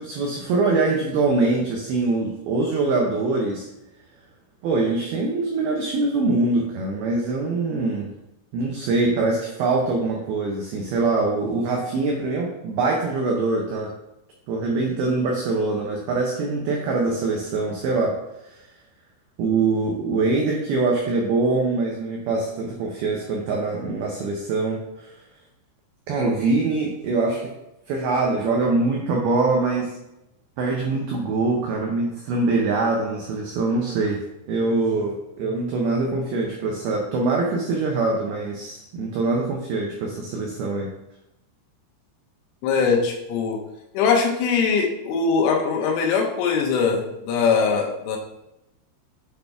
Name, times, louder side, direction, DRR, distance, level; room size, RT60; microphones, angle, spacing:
voice 1, 0.0-3.7 4.6-8.1 8.5-13.9 14.5-18.2 18.5-18.6 19.4-25.1 26.1-27.5 27.9-29.9 30.6-34.2 34.5-40.9, right 3 dB, 90° right, -1 dB, 2.1 m, -23 dB
voice 2, 42.6-43.6 44.0-48.2, left 5 dB, 90° left, 1 dB, 3.5 m, -21 dB
8.2 x 4.2 x 3.5 m, 0.90 s
omnidirectional pair, 5.5 m